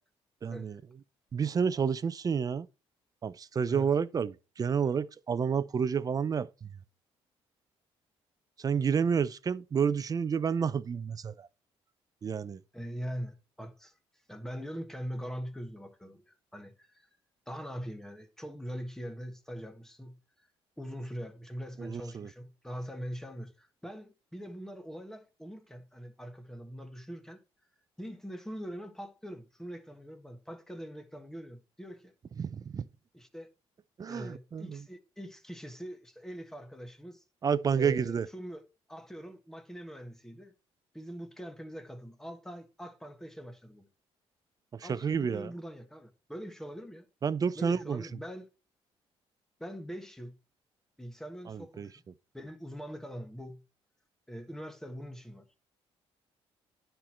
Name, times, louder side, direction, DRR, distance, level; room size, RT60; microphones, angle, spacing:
voice 1, 0.4-0.8 1.3-2.7 3.2-6.7 8.6-11.5 12.2-12.6 21.8-22.3 32.4-32.8 34.0-34.8 37.4-38.3 44.8-45.5 47.2-48.0 51.5-51.9, right 6 dB, 35° right, 0.5 m, -30 dB
voice 2, 12.7-13.9 14.3-17.1 17.5-20.5 20.8-27.4 28.0-32.1 33.1-33.5 34.1-37.2 37.7-38.6 38.9-40.5 40.9-43.9 44.8-47.0 47.5-48.5 49.6-50.4 51.0-51.9 52.3-53.6 54.3-55.4, equal, 5° left, 1.4 m, -42 dB
10.0 x 4.5 x 4.4 m
cardioid pair, 95°, 11 cm